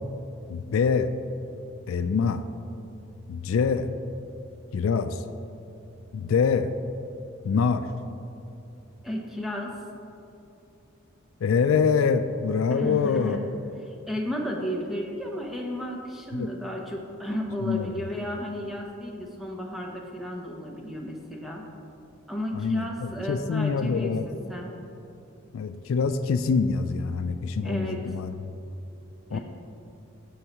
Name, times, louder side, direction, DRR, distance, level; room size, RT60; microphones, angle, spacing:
voice 1, 0.5-1.1 1.9-2.4 3.3-3.9 4.7-5.2 6.1-6.7 7.4-7.9 11.4-13.4 16.3-16.5 17.6-18.0 22.5-24.2 25.5-28.5 29.3-29.4, left 5 dB, 75° left, 10 dB, 0.3 m, -25 dB
voice 2, 9.0-9.7 12.7-13.5 13.9-21.7 22.3-24.7 27.6-28.0 29.3-29.4, equal, ahead, -1 dB, 0.7 m, -33 dB
9.9 x 7.1 x 3.0 m, 2.8 s
head